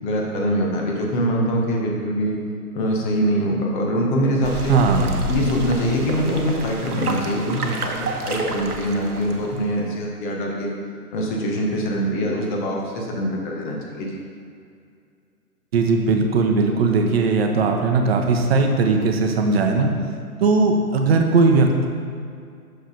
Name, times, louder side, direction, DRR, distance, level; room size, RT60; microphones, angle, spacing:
voice 1, 0.0-2.4 2.7-4.8 5.3-10.7 11.1-14.2, equal, 30° left, -1 dB, 1.3 m, -23 dB
sound 1, 4.4-9.7, right 2 dB, 75° right, 1.0 m, -29 dB
voice 2, 4.7-5.2 15.7-19.9 20.4-21.9, right 3 dB, 40° right, 4 dB, 0.8 m, -18 dB
6.4 x 4.9 x 5.2 m, 2.3 s
figure-of-eight pair, 125°, 46 cm